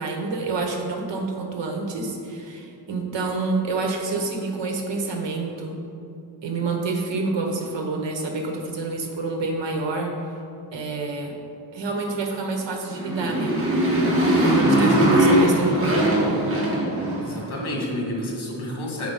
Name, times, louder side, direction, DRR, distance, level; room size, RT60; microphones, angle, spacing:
voice 1, 0.0-5.8 6.4-10.1 10.7-11.3 11.7-13.7 14.4-16.1, right 3 dB, 65° right, 2 dB, 1.2 m, -28 dB
Motorcycle, 12.9-17.5, right 1 dB, 25° right, 1.7 m, -20 dB
voice 2, 17.2-19.1, left 1 dB, 80° left, -1 dB, 2.0 m, -30 dB
7.7 x 4.9 x 5.4 m, 2.7 s
wide cardioid pair, 175°, 47 cm